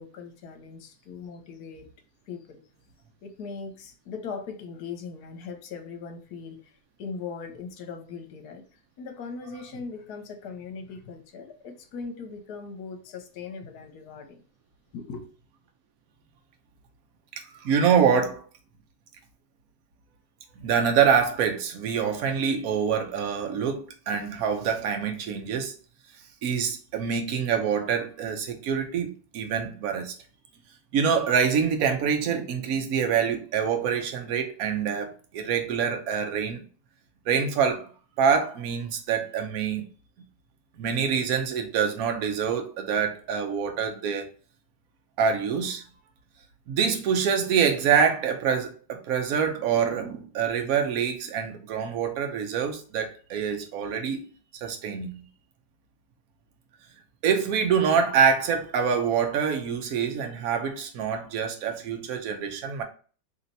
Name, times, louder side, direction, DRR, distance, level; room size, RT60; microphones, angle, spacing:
voice 1, 0.0-1.9 2.3-2.6 3.2-8.6 9.0-14.4 14.9-15.3, left 5 dB, 65° left, 1.2 m, -39 dB
voice 2, 17.6-18.4 20.6-25.7 26.4-30.1 30.9-36.6 37.3-37.8 38.2-39.9 40.8-44.3 45.2-45.8 46.7-54.3 54.6-55.2 57.2-62.8, right 7 dB, 60° right, 1.1 m, -25 dB
3.2 x 2.9 x 3.9 m
omnidirectional pair, 1.9 m